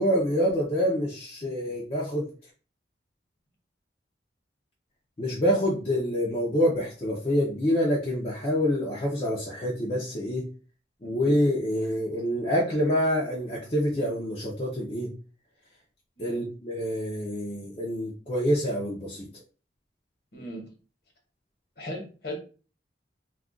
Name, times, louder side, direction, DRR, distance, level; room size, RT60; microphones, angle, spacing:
voice 1, 0.0-2.3 5.2-10.5 11.0-15.1 16.2-19.3, equal, 30° left, -4 dB, 0.6 m, -26 dB
voice 2, 20.3-20.7 21.8-22.4, left 1 dB, 60° left, 1 dB, 1.1 m, -37 dB
2.4 x 2.3 x 3.6 m, 0.36 s
head